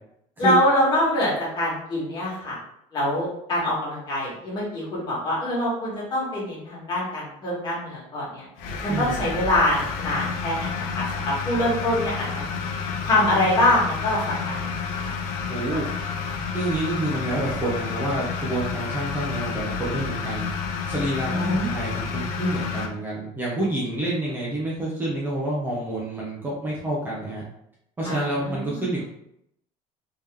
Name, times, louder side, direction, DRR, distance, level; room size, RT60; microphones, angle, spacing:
voice 1, 0.4-2.6 2.9-8.4 8.8-12.4 13.0-14.2 14.4-14.7 15.0-15.1 15.5-15.8 21.2-21.6 28.0-28.7, left 1 dB, 30° left, -6 dB, 1.5 m, -24 dB
sound 1, 8.6-22.9, left 5 dB, 70° left, 0.6 m, -30 dB
voice 2, 8.9-9.3 15.5-15.9 16.5-20.5 20.9-27.4 28.0-29.0, right 1 dB, 15° right, -5 dB, 0.6 m, -28 dB
3.6 x 2.9 x 3.5 m, 0.77 s
cardioid pair, 175°, 15 cm